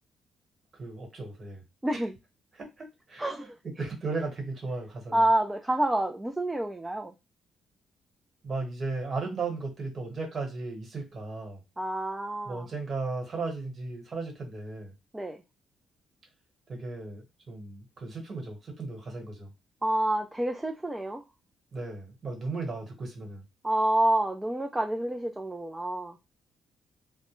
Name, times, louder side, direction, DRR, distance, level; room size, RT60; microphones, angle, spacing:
voice 1, 0.7-1.6 2.5-3.3 3.6-5.3 8.4-11.6 12.4-14.9 16.7-19.5 21.7-23.4, right 3 dB, 45° right, 1.1 m, -36 dB
voice 2, 1.8-2.2 3.2-3.5 5.1-7.1 11.8-12.7 15.1-15.4 19.8-21.2 23.6-26.1, right 1 dB, 10° right, 0.3 m, -28 dB
2.2 x 2.1 x 3.0 m
cardioid pair, 90°, 0 cm